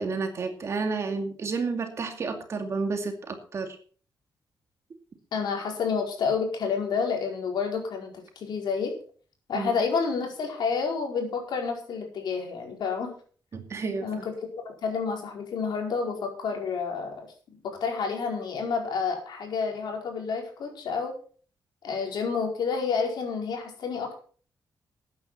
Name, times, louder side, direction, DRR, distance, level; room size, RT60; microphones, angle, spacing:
voice 1, 0.0-3.8 9.5-9.7 13.5-14.3, right 4 dB, 40° right, 5 dB, 2.4 m, -31 dB
voice 2, 5.3-8.1 8.4-8.9 9.5-13.1 14.0-14.3 14.6-17.3 17.6-21.1 21.8-24.1, left 5 dB, 65° left, 2 dB, 4.7 m, -29 dB
13.5 x 9.5 x 5.6 m, 0.43 s
wide cardioid pair, 175°, 8 cm